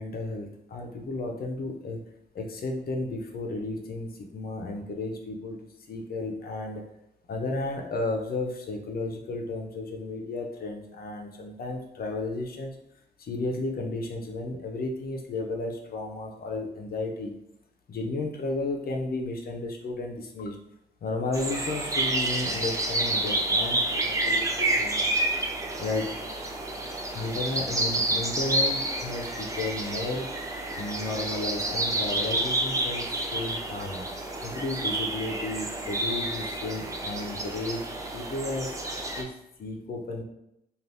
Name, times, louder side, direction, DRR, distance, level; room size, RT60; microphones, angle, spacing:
voice 1, 0.0-2.1 2.3-6.8 7.3-12.8 13.2-17.4 17.9-20.6 21.0-25.1 25.8-26.1 27.1-30.3 30.7-34.0 34.4-37.8 38.1-38.8 39.2-40.2, left 2 dB, 65° left, 1 dB, 0.6 m, -33 dB
sound 1, 21.3-39.2, right 2 dB, 20° right, 0.4 m, -29 dB
2.6 x 2.5 x 3.3 m, 0.82 s
wide cardioid pair, 125°, 17 cm